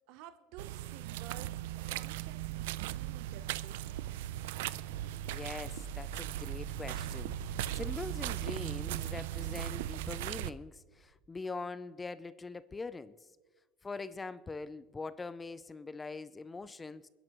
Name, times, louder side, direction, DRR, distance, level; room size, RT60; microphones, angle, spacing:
voice 1, 0.1-4.0, right 11 dB, 65° right, 0.7 m, -52 dB
sound 1, 0.6-10.5, right 14 dB, 90° right, 0.4 m, -38 dB
voice 2, 5.3-7.4 7.7-13.2 13.8-17.1, left 3 dB, 15° left, 0.4 m, -43 dB
sound 2, 10.4-11.3, right 4 dB, 40° right, 1.0 m, -48 dB
27.5 x 10.5 x 3.0 m
supercardioid pair, 140°, 0 cm